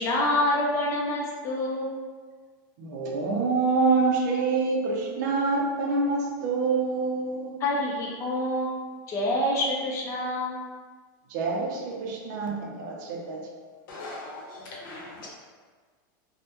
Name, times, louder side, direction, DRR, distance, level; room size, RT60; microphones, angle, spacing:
voice 1, 0.0-1.9 4.0-4.1 4.3-4.4 7.6-10.6, left 1 dB, 25° left, -3 dB, 0.4 m, -27 dB
voice 2, 2.8-7.5 11.3-13.5, right 4 dB, 60° right, 0 dB, 0.5 m, -26 dB
voice 3, 13.9-15.3, left 2 dB, 85° left, -3 dB, 0.8 m, -40 dB
2.2 x 2.1 x 2.8 m, 1.5 s
supercardioid pair, 160°, 11 cm